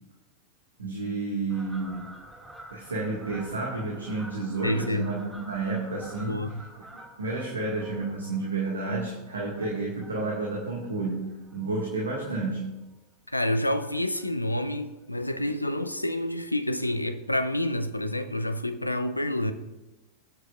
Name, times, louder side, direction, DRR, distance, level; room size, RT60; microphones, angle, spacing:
voice 1, 0.8-2.0 2.7-6.4 7.2-12.7, right 3 dB, 75° right, 1.9 m, -31 dB
Fowl, 1.5-12.3 12.7-13.0 13.7-14.3 14.6-14.7 14.9-15.0 15.3-15.4 15.7-15.9 16.9-17.0 17.5-17.6, right 1 dB, 10° right, 2.2 m, -48 dB
voice 2, 4.6-5.1 6.3-6.6 13.3-19.5, left 1 dB, 85° left, 0.6 m, -28 dB
19.5 x 7.9 x 2.5 m
figure-of-eight pair, 90°, 0 cm